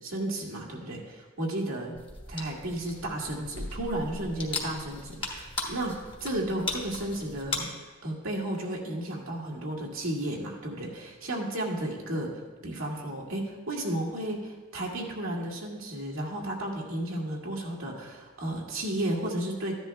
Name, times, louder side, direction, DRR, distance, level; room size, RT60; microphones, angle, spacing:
voice 1, 0.0-2.0 2.3-19.8, right 1 dB, 75° right, -1 dB, 1.9 m, -33 dB
sound 1, 1.9-7.6, left 3 dB, 25° left, 1.3 m, -37 dB
14.5 x 10.5 x 2.2 m, 1.3 s
head